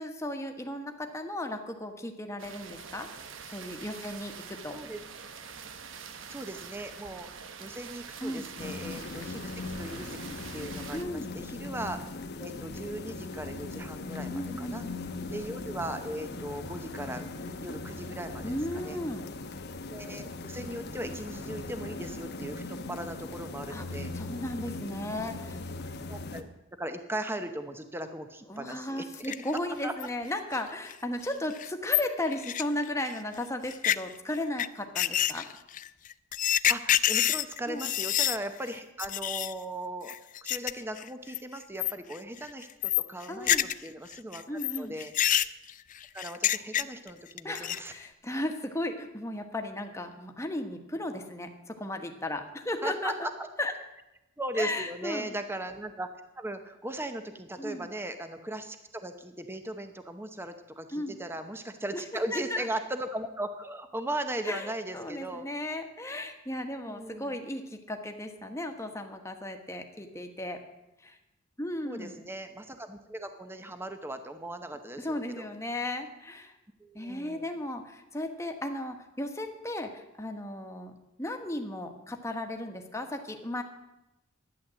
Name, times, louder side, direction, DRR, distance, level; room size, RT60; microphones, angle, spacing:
voice 1, 0.0-3.1 3.5-4.8 8.2-8.5 10.9-11.4 14.3-15.0 18.4-19.2 23.7-25.6 28.5-35.5 37.7-37.9 43.3-43.7 44.5-45.0 47.4-53.3 53.6-53.7 54.5-55.3 57.6-57.9 60.9-61.2 62.3-62.7 64.4-70.6 71.0-71.2 71.6-72.2 75.0-76.5 76.9-80.9 81.2-83.6, left 1 dB, 15° left, 5 dB, 1.3 m, -35 dB
sound 1, 2.4-11.0, right 6 dB, 70° right, 1.0 m, -45 dB
voice 2, 4.7-5.0 6.3-7.3 7.6-9.5 9.8-12.0 12.4-14.8 15.3-19.0 19.9-24.1 26.1-26.4 26.8-29.3 29.8-29.9 36.7-40.1 40.4-43.5 43.8-45.1 46.1-47.9 52.8-53.5 54.4-56.1 56.4-65.4 66.8-67.3 71.8-75.5 76.8-77.4, right 1 dB, 10° right, 8 dB, 0.9 m, -38 dB
sound 2, 8.6-26.4, left 3 dB, 55° left, 1.0 m, -39 dB
sound 3, 29.1-29.6 30.0-30.1 30.5-30.6 30.9-31.0 31.3-31.4 31.5-33.2 33.7-34.0 34.6-34.7 34.9-38.4 38.7-38.8 39.0-39.5 40.1-40.7 41.0-41.4 41.8-42.2 42.4-43.9 44.1-47.1 47.4-47.9, left 11 dB, 40° left, 0.4 m, -27 dB
12.0 x 10.0 x 7.6 m, 0.93 s
head